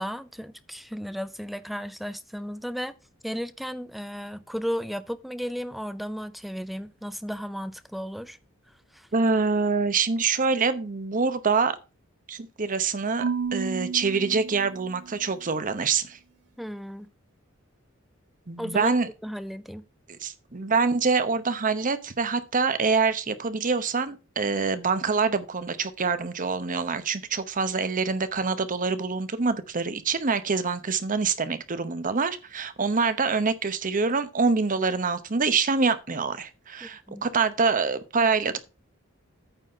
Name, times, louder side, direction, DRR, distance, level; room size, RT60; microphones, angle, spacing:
voice 1, 0.0-2.9 3.2-8.4 8.9-9.1 16.6-17.1 18.6-18.9 19.2-19.8 36.8-37.3, equal, ahead, 0.4 m, -34 dB
voice 2, 9.1-11.8 12.3-13.2 13.5-16.2 18.5-19.1 20.2-38.6, right 4 dB, 40° right, 0.9 m, -25 dB
Marimba xylophone / Wood, 13.2-15.4, right 5 dB, 55° right, 0.4 m, -32 dB
9.0 x 4.2 x 6.5 m
head